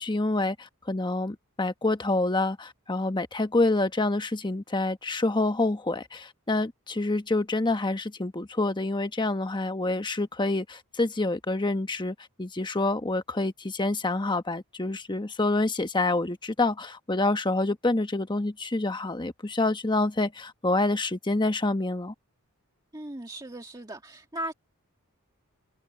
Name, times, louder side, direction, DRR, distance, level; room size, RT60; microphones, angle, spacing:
voice 1, 0.0-22.1, left 2 dB, 20° left, 1.1 m, -27 dB
voice 2, 22.9-24.5, right 1 dB, 20° right, 2.0 m, -37 dB
head